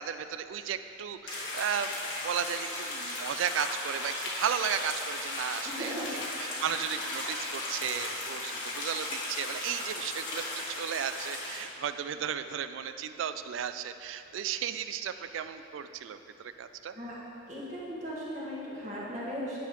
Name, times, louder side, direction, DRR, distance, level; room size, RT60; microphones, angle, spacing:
voice 1, 0.0-5.9 6.6-10.4 10.8-17.0, right 8 dB, 80° right, 11 dB, 0.3 m, -34 dB
sound 1, 1.3-11.6, left 2 dB, 65° left, 1.4 m, -36 dB
voice 2, 5.6-6.2 16.9-17.2 17.5-19.6, equal, 35° right, -7 dB, 1.6 m, -37 dB
9.8 x 6.7 x 3.1 m, 2.8 s
head